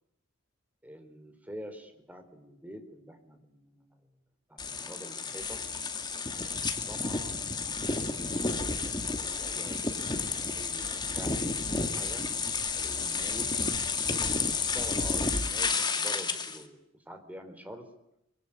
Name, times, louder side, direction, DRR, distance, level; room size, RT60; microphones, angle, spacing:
voice 1, 0.8-4.0 4.5-5.6 6.3-9.8 10.1-12.2 12.7-13.6 14.0-16.8 17.1-17.9, equal, 10° right, 6 dB, 4.2 m, -47 dB
sound 1, 4.6-16.6, left 4 dB, 20° left, 2.3 m, -31 dB
25.5 x 25.0 x 8.9 m, 0.83 s
head